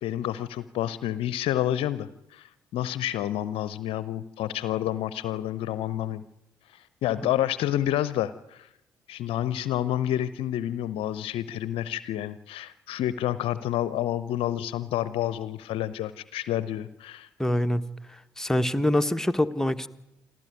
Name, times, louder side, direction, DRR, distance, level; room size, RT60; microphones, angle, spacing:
voice 1, 0.0-6.2 6.7-8.7 9.1-17.3, left 12 dB, 60° left, 16 dB, 0.7 m, -29 dB
voice 2, 17.4-17.8 18.4-19.9, left 1 dB, 5° left, 8 dB, 1.3 m, -24 dB
27.0 x 13.5 x 9.5 m, 0.88 s
figure-of-eight pair, 45°, 10 cm